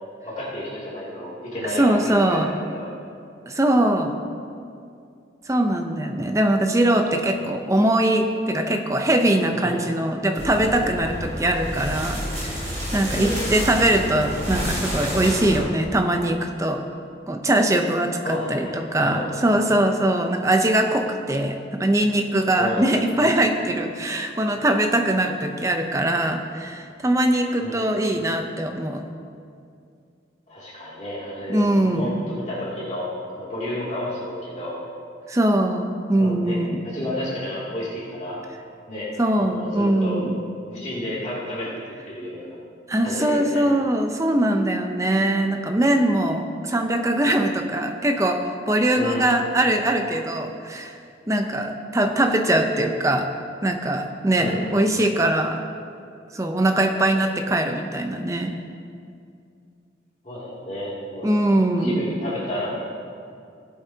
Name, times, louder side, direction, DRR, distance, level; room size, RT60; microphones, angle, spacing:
voice 1, 0.3-2.9 7.4-7.6 9.5-9.8 13.1-13.6 18.2-19.4 22.6-22.9 27.6-27.8 30.5-31.6 31.9-34.8 36.2-36.6 36.8-38.4 38.9-39.1 39.4-40.3 40.7-41.8 42.1-42.6 43.0-43.6 48.9-49.3 54.4-54.7 60.2-61.3 61.7-62.8, left 1 dB, 40° left, -8 dB, 2.6 m, -31 dB
voice 2, 1.8-2.5 3.5-4.2 5.5-16.8 17.3-29.0 31.5-32.1 35.3-36.8 39.2-40.4 42.9-51.0 51.3-53.3 53.6-55.6 56.3-58.5 61.2-62.0, right 1 dB, 15° right, 5 dB, 0.6 m, -22 dB
sound 1, 10.4-15.6, equal, 40° right, 2.9 m, -29 dB
18.0 x 8.2 x 2.8 m, 2.4 s
head